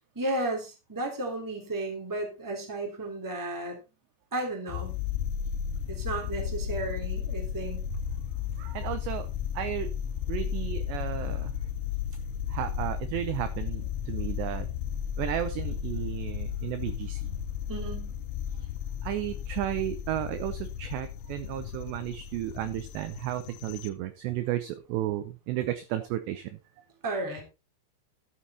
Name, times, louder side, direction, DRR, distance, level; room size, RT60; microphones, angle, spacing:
voice 1, 0.1-3.8 4.3-4.9 5.9-7.8 17.7-18.2 27.0-27.4, right 2 dB, 5° right, 2 dB, 1.7 m, -33 dB
sound 1, 4.7-23.9, left 9 dB, 90° left, 3.4 m, -34 dB
voice 2, 8.6-9.3 9.6-9.9 10.3-11.6 12.5-14.7 15.2-17.3 19.0-26.6, right 13 dB, 80° right, 10 dB, 2.5 m, -33 dB
12.5 x 7.4 x 4.1 m, 0.28 s
omnidirectional pair, 5.9 m